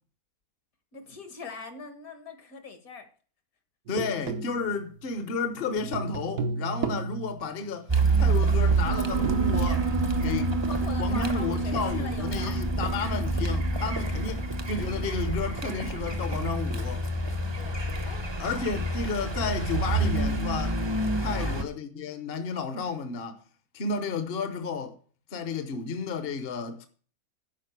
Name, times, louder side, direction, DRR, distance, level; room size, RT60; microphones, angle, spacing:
voice 1, 0.9-3.1 10.2-12.6 17.6-18.3 21.2-21.6, left 4 dB, 70° left, 2.2 m, -42 dB
voice 2, 3.9-7.9 8.2-9.9 10.2-10.5 11.0-17.0 18.4-20.8 21.2-23.4 23.7-25.0 25.3-26.9, left 4 dB, 45° left, 1.0 m, -32 dB
sound 1, 3.9-5.2 5.6-7.8 9.2-9.7, right 4 dB, 85° right, 1.6 m, -34 dB
Car, 7.9-21.6, right 2 dB, 25° right, 0.7 m, -28 dB
Piano, 8.8-15.0, right 6 dB, 60° right, 0.3 m, -32 dB
10.5 x 5.2 x 8.1 m
omnidirectional pair, 1.6 m